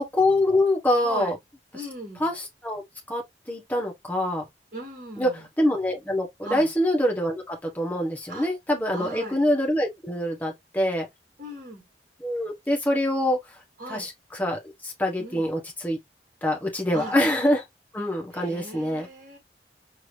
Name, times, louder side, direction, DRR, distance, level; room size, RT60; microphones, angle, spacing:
voice 1, 0.0-1.3 2.2-2.8 3.1-3.2 3.5-4.5 5.2-5.3 5.6-11.0 12.2-13.4 13.9-16.0 16.4-17.6 17.9-19.1, left 1 dB, 10° left, 1.3 m, -25 dB
voice 2, 1.0-1.3 1.7-2.3 4.7-5.4 6.4-6.7 8.3-8.5 8.9-9.4 11.4-11.8 13.8-14.1 15.2-15.5 16.9-17.2 18.3-19.4, right 2 dB, 45° right, 3.0 m, -37 dB
4.7 x 2.9 x 3.3 m
head